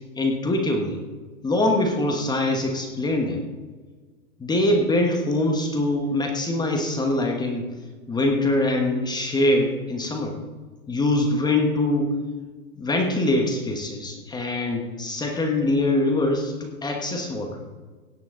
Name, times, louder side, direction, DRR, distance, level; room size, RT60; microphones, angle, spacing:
voice 1, 0.2-1.0 1.4-3.4 4.4-7.7 8.1-10.4 10.9-12.1 12.8-17.6, left 2 dB, 10° left, 3 dB, 1.2 m, -23 dB
17.0 x 9.1 x 3.8 m, 1.4 s
hypercardioid pair, 135°, 43 cm